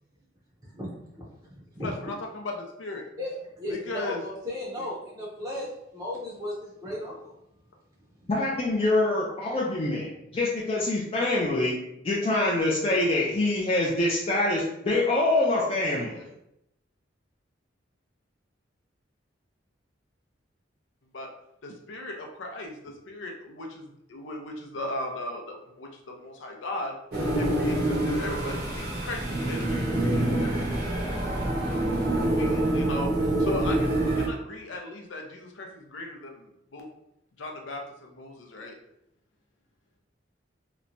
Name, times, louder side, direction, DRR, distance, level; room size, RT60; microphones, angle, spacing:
voice 1, 0.6-2.1 3.2-5.7 5.9-7.3, left 1 dB, 20° right, -5 dB, 0.5 m, -36 dB
voice 2, 1.8-3.0 3.7-4.2 21.1-21.3 21.6-27.0 27.4-30.8 31.7-36.9 37.4-38.8, left 2 dB, 90° left, 2 dB, 0.5 m, -37 dB
voice 3, 8.3-11.8 12.0-16.2, left 2 dB, 30° left, -5 dB, 0.4 m, -25 dB
sound 1, 27.1-34.3, right 1 dB, 55° right, 0.6 m, -26 dB
2.9 x 2.1 x 2.5 m, 0.81 s
head